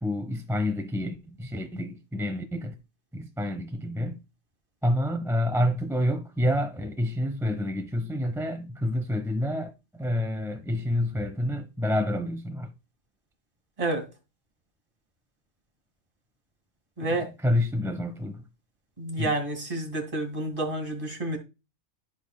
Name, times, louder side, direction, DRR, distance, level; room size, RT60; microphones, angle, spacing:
voice 1, 0.0-2.7 3.1-4.2 4.8-12.7 17.0-18.4 19.2-19.3, left 1 dB, 5° right, 0.6 m, -28 dB
voice 2, 17.0-17.3 19.0-21.4, right 2 dB, 25° right, 2.4 m, -29 dB
14.5 x 5.4 x 2.2 m
omnidirectional pair, 1.3 m